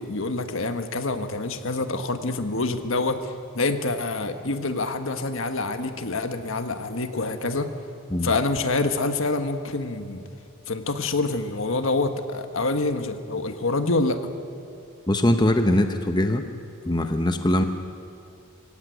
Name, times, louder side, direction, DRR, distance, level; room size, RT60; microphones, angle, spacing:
voice 1, 0.0-7.7 8.2-10.2 10.7-14.2, left 3 dB, 65° left, 8 dB, 1.4 m, -26 dB
voice 2, 15.1-16.4 16.8-17.6, left 1 dB, 20° left, 6 dB, 0.9 m, -21 dB
24.0 x 16.5 x 9.4 m, 2.4 s
head